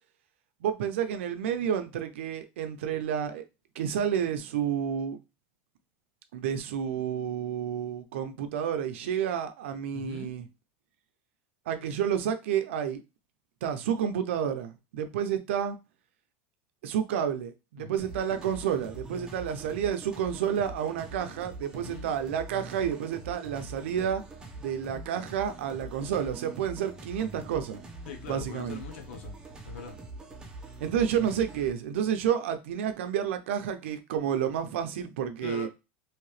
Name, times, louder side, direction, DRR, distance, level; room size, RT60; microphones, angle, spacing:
voice 1, 0.6-3.4 3.8-5.2 6.3-10.4 11.7-13.0 13.6-15.8 16.8-24.2 24.6-27.8 28.3-28.8 30.8-35.7, right 8 dB, 85° right, 0.6 m, -30 dB
voice 2, 9.9-10.3 17.8-18.1 21.7-22.1 28.0-29.4 29.7-30.0 35.4-35.7, left 7 dB, 85° left, 0.9 m, -42 dB
sound 1, 18.0-31.7, right 2 dB, 10° right, 0.9 m, -44 dB
3.2 x 2.8 x 3.1 m
supercardioid pair, 130°, 6 cm